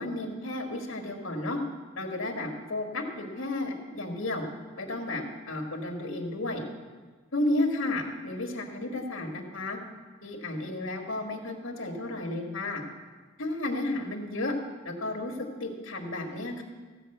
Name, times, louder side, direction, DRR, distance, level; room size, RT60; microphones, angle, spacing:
voice 1, 0.0-1.6 2.0-4.4 4.8-6.6 7.3-9.8 10.2-12.8 13.4-14.5 14.8-16.6, left 2 dB, 90° left, 2 dB, 1.7 m, -32 dB
15.0 x 5.1 x 7.8 m, 1.4 s
head